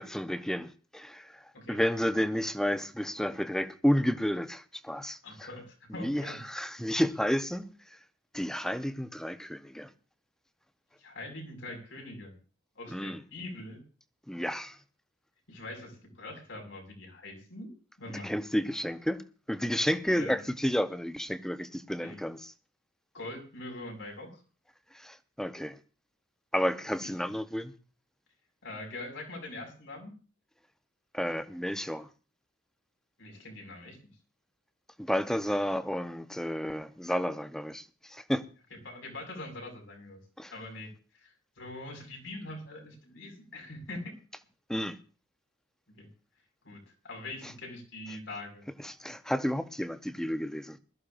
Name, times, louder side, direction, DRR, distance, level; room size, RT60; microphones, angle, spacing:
voice 1, 0.0-1.4 1.7-5.2 6.0-6.2 6.5-7.6 8.3-9.9 12.9-13.2 14.3-14.8 18.2-19.2 19.5-22.4 24.9-25.8 26.5-27.7 31.1-32.1 35.0-37.8 38.1-38.4 40.4-40.5 44.7-45.0 48.8-50.8, equal, 5° left, 0.8 m, -31 dB
voice 2, 5.2-6.4 11.0-12.3 12.8-13.8 15.5-17.7 18.0-18.3 20.1-20.4 22.0-22.2 23.1-24.4 26.8-27.3 28.6-30.1 33.2-34.0 38.7-40.2 40.5-44.1 46.0-46.1 46.6-48.7, left 2 dB, 90° left, 5.3 m, -43 dB
21.0 x 13.5 x 2.5 m
head